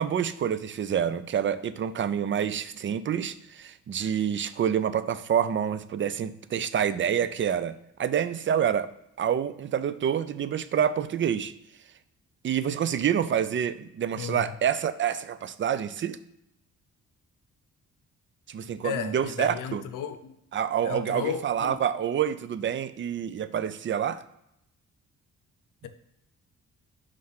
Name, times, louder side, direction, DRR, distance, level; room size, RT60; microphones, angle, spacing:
voice 1, 0.0-8.9 9.2-11.5 12.4-16.2 18.5-19.8 20.5-24.2, right 9 dB, 40° right, 0.4 m, -27 dB
voice 2, 14.2-14.5 18.8-20.3 20.8-21.8, left 8 dB, 90° left, 0.6 m, -34 dB
5.6 x 3.2 x 5.6 m
cardioid pair, 85°, 31 cm